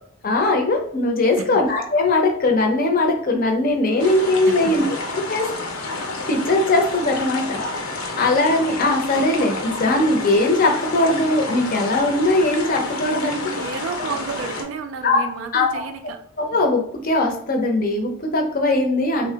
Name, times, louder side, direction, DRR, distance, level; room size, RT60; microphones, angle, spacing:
voice 1, 0.2-5.5 5.8-5.9 6.3-7.9 8.2-13.4 15.0-15.3 15.5-15.8 16.4-19.3, left 2 dB, 40° left, 2 dB, 0.5 m, -20 dB
sound 1, 4.0-14.6, left 3 dB, 85° left, 0.6 m, -30 dB
voice 2, 4.0-4.7 13.6-16.2, right 5 dB, 65° right, 8 dB, 0.3 m, -32 dB
3.3 x 2.0 x 2.7 m, 0.66 s
head